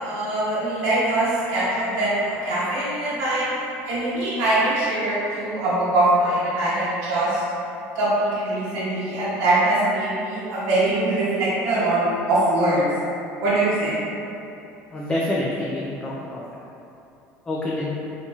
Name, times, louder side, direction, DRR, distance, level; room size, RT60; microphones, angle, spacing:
voice 1, 0.0-7.4 7.9-12.8 13.4-14.0, right 2 dB, 75° right, -9 dB, 0.9 m, -22 dB
voice 2, 14.9-16.5 17.5-18.0, left 1 dB, 20° left, -6 dB, 0.4 m, -27 dB
4.0 x 2.9 x 2.4 m, 2.9 s
cardioid pair, 120°, 6 cm